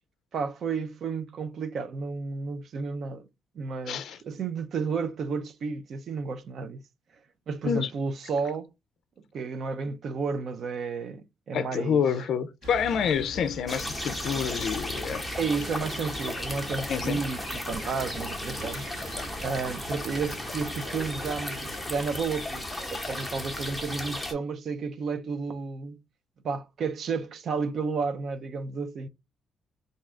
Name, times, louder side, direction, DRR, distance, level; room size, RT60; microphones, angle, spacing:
voice 1, 0.3-3.2 3.5-6.9 7.5-8.7 9.3-12.0 15.4-18.9 19.4-26.0 26.4-29.1, right 5 dB, 50° right, 0.5 m, -32 dB
voice 2, 3.9-4.2 7.6-7.9 11.5-15.2 16.9-17.2, left 7 dB, 60° left, 0.4 m, -28 dB
sound 1, 12.6-21.8, right 1 dB, 65° right, 1.4 m, -43 dB
sound 2, 13.7-24.3, left 1 dB, 5° left, 0.9 m, -35 dB
3.6 x 2.7 x 3.2 m
cardioid pair, 150°, 0 cm